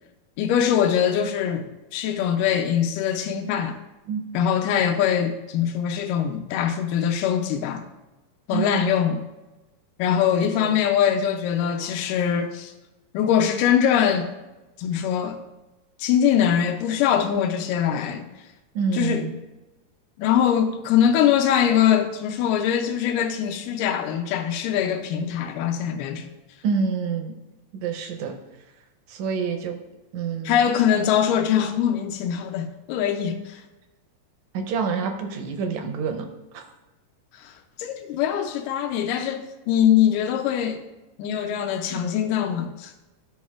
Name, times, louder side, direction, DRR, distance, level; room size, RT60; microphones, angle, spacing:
voice 1, 0.4-1.7 1.9-3.8 4.3-7.8 8.5-9.2 10.0-12.7 13.1-14.3 14.8-15.4 16.0-18.3 18.9-19.3 20.2-26.3 30.4-33.6 37.3-37.5 37.8-40.8 41.2-42.9, left 9 dB, 90° left, 4 dB, 2.2 m, -22 dB
voice 2, 8.5-8.9 10.1-10.8 18.7-19.3 26.6-27.3 27.7-28.3 29.1-29.8 30.1-30.6 34.5-36.3 36.5-36.6 41.9-42.0, right 5 dB, 75° right, 4 dB, 1.9 m, -27 dB
13.5 x 6.2 x 2.4 m, 1.1 s
omnidirectional pair, 3.7 m